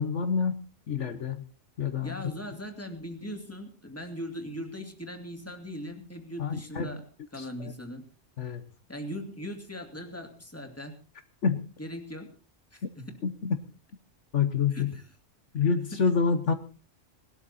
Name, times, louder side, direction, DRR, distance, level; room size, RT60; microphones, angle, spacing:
voice 1, 0.0-1.4 1.8-2.2 6.4-6.9 7.4-7.7 8.4-8.6 11.4-11.6 13.2-13.6 14.3-14.9 15.5-16.5, left 6 dB, 70° left, 8 dB, 1.4 m, -27 dB
voice 2, 2.0-7.0 7.3-8.0 8.9-11.0 11.8-12.3 12.7-13.1 14.7-15.0 15.6-16.0, equal, 10° left, 5 dB, 2.4 m, -39 dB
19.5 x 13.0 x 4.2 m, 0.35 s
omnidirectional pair, 1.3 m